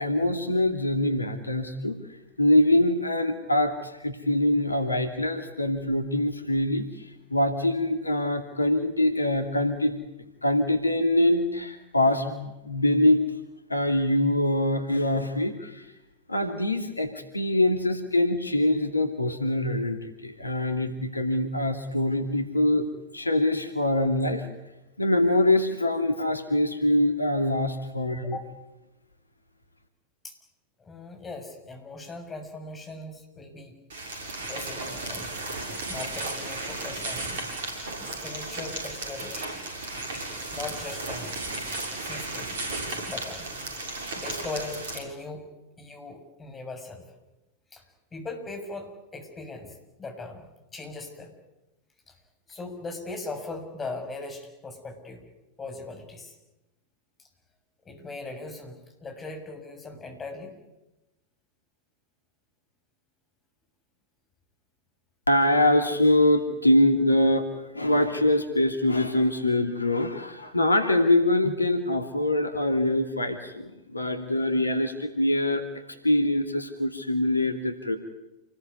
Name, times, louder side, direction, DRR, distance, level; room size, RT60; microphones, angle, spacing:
voice 1, 0.0-2.0 2.4-10.0 10.4-13.3 13.7-15.9 16.3-22.9 23.1-24.5 25.0-28.4 65.3-75.7 76.0-78.0, left 1 dB, 80° left, 6 dB, 2.6 m, -24 dB
voice 2, 30.8-33.8 34.5-35.4 35.9-37.4 38.1-39.5 40.1-40.3 40.5-41.3 42.0-42.6 42.9-43.5 44.2-45.5 45.8-47.1 47.7-47.8 48.1-51.3 52.1-52.2 52.5-55.2 55.6-56.3 57.8-60.5, left 3 dB, 15° left, 3 dB, 7.2 m, -39 dB
sound 1, 33.9-45.0, right 2 dB, 60° right, 6.9 m, -34 dB
28.5 x 20.5 x 9.6 m, 0.99 s
figure-of-eight pair, 90°, 0 cm